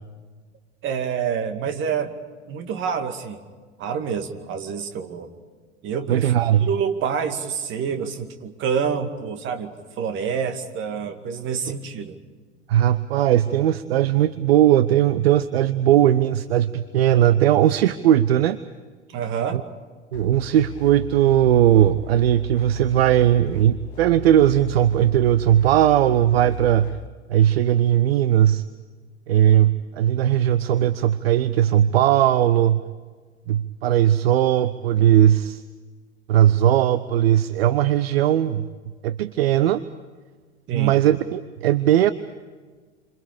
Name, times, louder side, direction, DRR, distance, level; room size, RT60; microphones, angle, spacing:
voice 1, 0.8-2.2 2.5-3.4 3.8-5.3 5.8-6.3 6.6-12.2 19.1-19.6 40.7-41.0, right 7 dB, 35° right, 6 dB, 2.4 m, -27 dB
voice 2, 6.1-6.7 12.7-18.6 19.5-19.6 20.1-26.9 27.3-28.6 29.3-32.8 33.5-35.6 36.3-38.7 39.0-39.8 40.7-42.1, right 11 dB, 55° right, 13 dB, 0.8 m, -18 dB
sound 1, 20.1-27.1, left 9 dB, 65° left, 0.9 m, -38 dB
28.5 x 26.5 x 5.1 m, 1.5 s
figure-of-eight pair, 85°, 35 cm